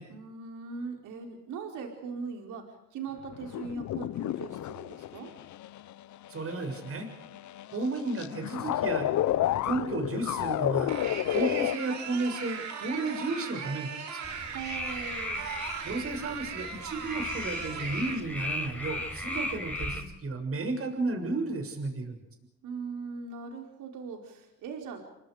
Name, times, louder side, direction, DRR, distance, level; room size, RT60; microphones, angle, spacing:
voice 1, 0.1-5.3 14.5-15.4 22.6-25.0, right 5 dB, 90° right, 3 dB, 4.7 m, -40 dB
sound 1, 3.3-11.8, left 13 dB, 70° left, 0.8 m, -31 dB
voice 2, 6.3-7.1 7.7-9.1 9.6-10.9 11.3-14.3 15.8-22.2, right 3 dB, 50° right, 5 dB, 6.9 m, -33 dB
sound 2, 10.9-18.2, right 6 dB, 65° right, 5.6 m, -39 dB
sound 3, 14.2-20.0, left 1 dB, 5° left, 5.3 m, -36 dB
30.0 x 24.0 x 5.1 m, 0.87 s
cardioid pair, 90°, 30 cm